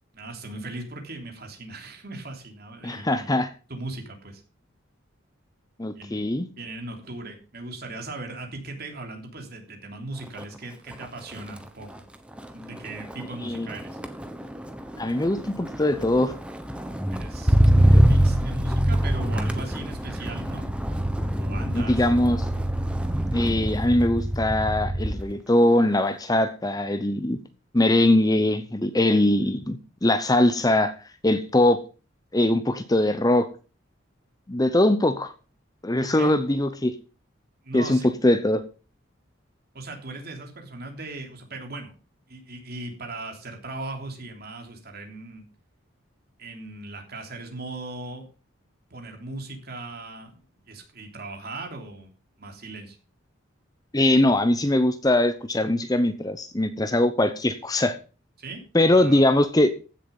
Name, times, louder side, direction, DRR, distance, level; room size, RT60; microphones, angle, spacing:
voice 1, 0.1-3.3 3.7-4.4 5.9-11.9 12.5-14.0 17.1-20.7 21.4-22.0 36.0-36.4 37.6-38.1 39.7-41.9 42.3-45.4 46.4-48.3 48.9-52.1 52.4-53.0 58.4-58.6 58.9-59.2, right 2 dB, 50° right, 3 dB, 3.3 m, -38 dB
voice 2, 2.8-3.5 5.8-6.5 13.4-13.7 15.0-16.4 17.8-18.0 21.7-22.5 23.3-27.4 27.7-30.9 31.2-31.8 32.3-33.5 34.5-35.3 35.8-36.9 37.7-38.6 53.9-58.0 58.7-59.7, left 1 dB, 20° left, 11 dB, 0.7 m, -21 dB
Motor vehicle (road), 10.2-10.6 10.9-25.3 25.7-26.2, equal, 5° right, 1.0 m, -25 dB
15.5 x 7.2 x 5.4 m, 0.35 s
head